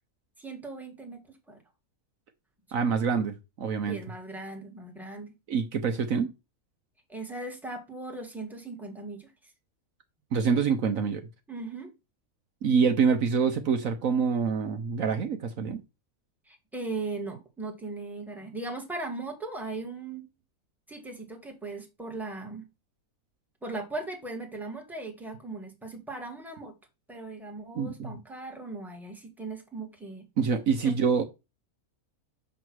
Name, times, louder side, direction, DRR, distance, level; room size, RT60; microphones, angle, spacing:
voice 1, 0.4-1.6 2.7-2.9 3.9-5.3 7.1-9.5 11.5-11.9 16.5-20.3 20.9-22.7 23.6-26.7 27.1-30.3 30.8-30.9, right 3 dB, ahead, 1.7 m, -38 dB
voice 2, 2.7-4.0 5.5-6.3 10.3-11.2 12.6-15.8 27.7-28.2 30.4-31.2, right 6 dB, 65° right, 1.2 m, -26 dB
7.5 x 3.1 x 6.2 m
omnidirectional pair, 1.6 m